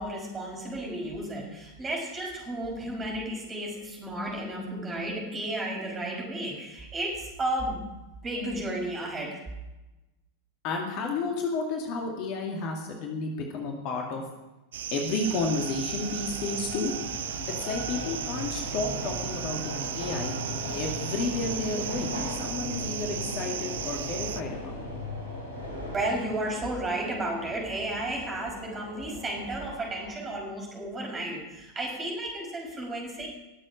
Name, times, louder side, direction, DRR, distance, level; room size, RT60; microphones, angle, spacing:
voice 1, 0.0-7.8 8.2-9.4 25.9-33.3, right 1 dB, 20° right, -1 dB, 5.7 m, -33 dB
voice 2, 10.6-14.2 14.9-16.9 17.6-20.4 20.7-24.7, left 3 dB, 40° left, 1 dB, 2.2 m, -32 dB
sound 1, 14.7-24.4, right 11 dB, 60° right, 0.5 m, -36 dB
sound 2, 15.2-30.1, equal, 75° left, 4.2 m, -37 dB
20.5 x 7.7 x 6.2 m, 1.0 s
figure-of-eight pair, 90°, 0 cm